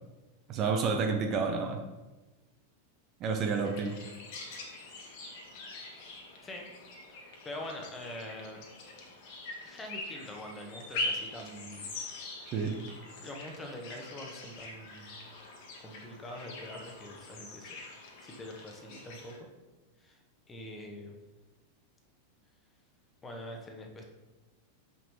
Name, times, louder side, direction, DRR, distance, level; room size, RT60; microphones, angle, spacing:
voice 1, 0.5-1.8 3.2-4.0 12.5-12.8, right 5 dB, 35° right, 3 dB, 0.8 m, -30 dB
sound 1, 3.4-19.4, left 2 dB, 45° left, 1.5 m, -43 dB
voice 2, 7.1-8.6 9.6-11.9 13.2-15.2 15.8-17.8 18.2-19.3 20.0-20.2 20.5-21.1 23.2-24.0, left 1 dB, 15° left, 2 dB, 1.2 m, -44 dB
7.0 x 6.1 x 3.2 m, 1.1 s
figure-of-eight pair, 90°, 0 cm